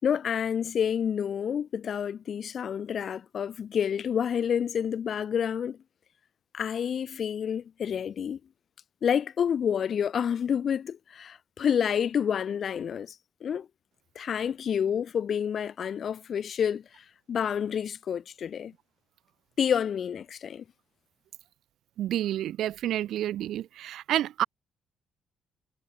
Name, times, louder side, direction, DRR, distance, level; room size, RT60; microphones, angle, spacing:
voice 1, 0.0-5.8 6.5-8.4 9.0-13.1 13.4-13.7 14.1-18.7 19.6-20.6, left 8 dB, 55° left, 3.2 m, -29 dB
voice 2, 22.0-24.4, right 12 dB, 80° right, 1.8 m, -29 dB
cardioid pair, 90°, 0 cm